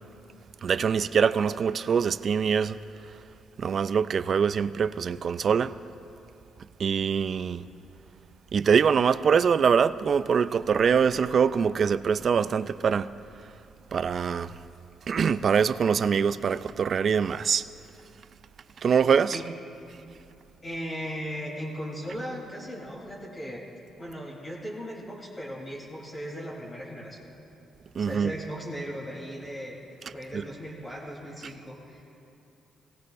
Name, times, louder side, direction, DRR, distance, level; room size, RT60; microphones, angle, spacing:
voice 1, 0.6-2.8 3.6-5.7 6.8-7.6 8.5-13.1 13.9-14.5 15.1-17.6 18.8-19.4 28.0-28.4 30.0-30.5 31.4-31.5, right 6 dB, 50° right, 0.3 m, -24 dB
voice 2, 20.6-23.6 24.0-27.3 28.0-29.8 30.1-32.0, equal, 25° left, 3.5 m, -37 dB
18.5 x 16.5 x 2.6 m
cardioid pair, 90°, 0 cm